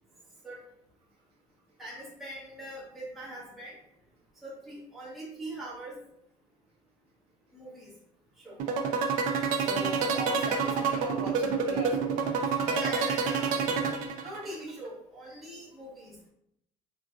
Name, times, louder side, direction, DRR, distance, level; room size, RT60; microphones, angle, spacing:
voice 1, 1.8-3.8 4.4-6.0 7.5-7.9 8.4-8.6 12.7-13.9 14.2-16.2, right 1 dB, ahead, -8 dB, 0.8 m, -42 dB
sound 1, 8.6-14.5, right 6 dB, 65° right, 0.4 m, -27 dB
voice 2, 9.6-13.0 13.5-14.1, equal, 40° right, -3 dB, 0.8 m, -39 dB
3.7 x 2.6 x 2.3 m, 0.75 s
cardioid pair, 180°, 15 cm